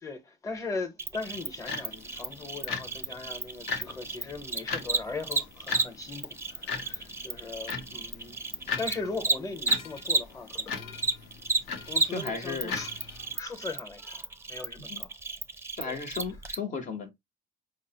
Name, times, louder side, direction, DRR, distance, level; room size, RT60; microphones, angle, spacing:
voice 1, 0.0-11.0 11.8-15.1 15.8-16.0, left 3 dB, 20° left, 0.8 m, -39 dB
Cricket, 1.0-10.6 10.9-16.5, right 3 dB, 15° right, 0.5 m, -32 dB
sound 1, 1.2-13.4, left 5 dB, 85° left, 0.9 m, -40 dB
voice 2, 12.1-12.7 14.8-15.0 15.7-17.1, left 5 dB, 45° left, 0.8 m, -35 dB
4.7 x 2.0 x 2.8 m
cardioid pair, 110°, 17 cm